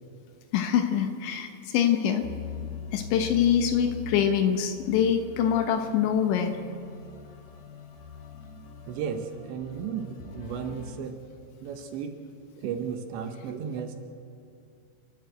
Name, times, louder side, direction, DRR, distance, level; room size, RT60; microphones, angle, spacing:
voice 1, 0.5-2.3 2.9-6.6, left 8 dB, 75° left, 7 dB, 3.1 m, -24 dB
sound 1, 2.2-10.9, left 6 dB, 55° left, 3.3 m, -42 dB
voice 2, 8.9-11.2 11.6-12.2 12.6-14.0, right 7 dB, 75° right, 6 dB, 3.1 m, -34 dB
29.5 x 11.5 x 7.9 m, 2.4 s
omnidirectional pair, 5.8 m